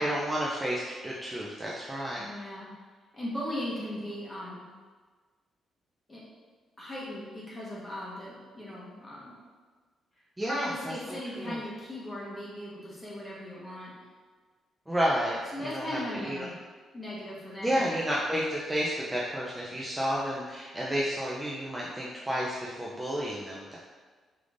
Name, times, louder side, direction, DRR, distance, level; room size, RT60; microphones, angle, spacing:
voice 1, 0.0-2.3 10.4-10.9 11.3-11.6 14.9-16.5 17.6-23.8, equal, 10° right, -5 dB, 0.4 m, -31 dB
voice 2, 2.2-2.7 3.1-4.6 6.1-6.2 6.8-9.4 10.4-13.9 15.5-16.5 16.9-17.8, left 1 dB, 20° left, -6 dB, 1.2 m, -38 dB
4.9 x 3.4 x 2.5 m, 1.4 s
cardioid pair, 140°, 0 cm